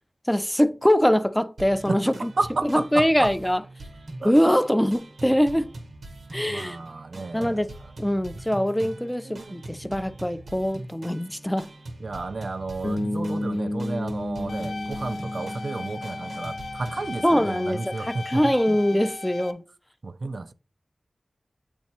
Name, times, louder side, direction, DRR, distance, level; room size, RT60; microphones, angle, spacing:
voice 1, 0.3-2.3 2.7-3.6 4.2-5.7 6.3-6.8 7.3-7.7 8.0-11.7 17.2-19.6, equal, 5° left, 0.4 m, -23 dB
sound 1, 1.6-17.1, right 2 dB, 90° right, 0.9 m, -42 dB
voice 2, 1.9-3.3 4.2-4.3 6.5-7.6 8.8-8.9 9.2-9.6 12.0-18.8 20.0-20.5, right 3 dB, 65° right, 0.3 m, -32 dB
Bass guitar, 12.8-16.9, left 1 dB, 65° left, 0.9 m, -32 dB
sound 2, 14.5-19.5, left 3 dB, 85° left, 0.5 m, -37 dB
7.4 x 3.0 x 4.3 m
wide cardioid pair, 70°, 0 cm